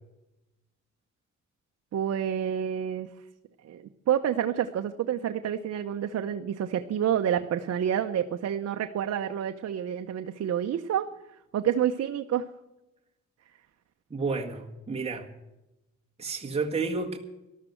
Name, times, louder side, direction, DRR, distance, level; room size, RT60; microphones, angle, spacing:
voice 1, 1.9-3.1 3.6-11.1 11.5-12.5, right 9 dB, 55° right, 7 dB, 0.9 m, -28 dB
voice 2, 14.1-15.3 16.2-17.2, right 4 dB, 20° right, 0 dB, 1.8 m, -31 dB
13.5 x 12.5 x 7.8 m, 0.98 s
cardioid pair, 90°, 30 cm